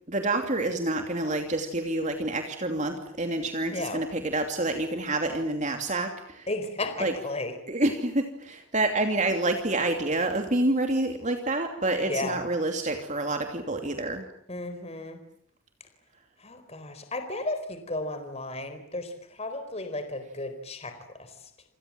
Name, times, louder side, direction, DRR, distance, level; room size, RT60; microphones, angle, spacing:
voice 1, 0.1-6.5 7.0-7.1 7.7-14.2, right 2 dB, 35° right, 5 dB, 2.8 m, -28 dB
voice 2, 3.7-4.0 6.5-7.5 12.0-12.4 14.5-15.2 16.4-21.5, left 2 dB, 30° left, 9 dB, 4.3 m, -34 dB
29.0 x 27.0 x 7.5 m, 0.63 s
head